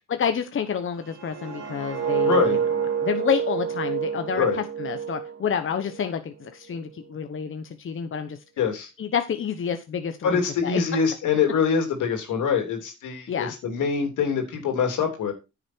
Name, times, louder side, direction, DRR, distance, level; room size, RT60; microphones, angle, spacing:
voice 1, 0.1-2.6 3.0-8.4 9.0-10.8 13.3-13.5, left 7 dB, 45° left, 7 dB, 1.1 m, -29 dB
sound 1, 1.0-6.1 6.4-6.8, right 7 dB, 60° right, 2.9 m, -28 dB
voice 2, 2.2-2.6 4.4-4.6 8.6-8.9 10.2-15.3, left 6 dB, 80° left, 4 dB, 3.3 m, -24 dB
9.9 x 6.5 x 4.5 m, 0.27 s
cardioid pair, 90°, 30 cm